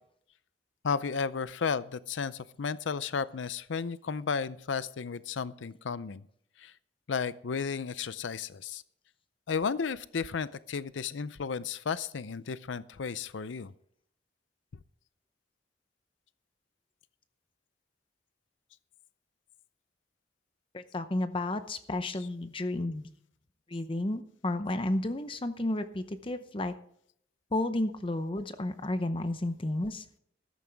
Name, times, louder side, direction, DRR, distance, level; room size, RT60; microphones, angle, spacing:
voice 1, 0.8-6.2 6.6-6.7 7.1-8.8 9.5-13.7, left 5 dB, 90° left, 16 dB, 0.5 m, -33 dB
voice 2, 20.7-23.1 23.7-26.7 27.5-30.2, left 1 dB, 30° left, 10 dB, 0.7 m, -32 dB
14.5 x 12.5 x 3.5 m, 0.67 s
head